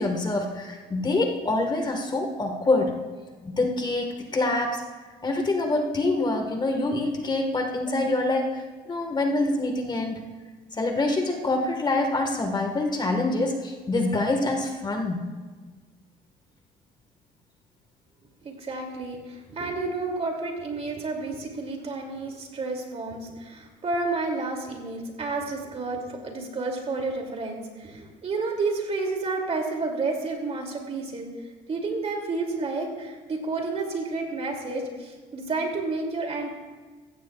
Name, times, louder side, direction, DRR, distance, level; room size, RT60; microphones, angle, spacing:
voice 1, 0.0-3.0 3.4-4.8 5.2-10.2 10.8-15.3, left 2 dB, 25° left, 3 dB, 1.5 m, -26 dB
voice 2, 18.4-31.3 31.7-36.5, right 3 dB, 40° right, 2 dB, 2.6 m, -30 dB
15.5 x 15.0 x 2.4 m, 1.4 s
cardioid pair, 110°, 17 cm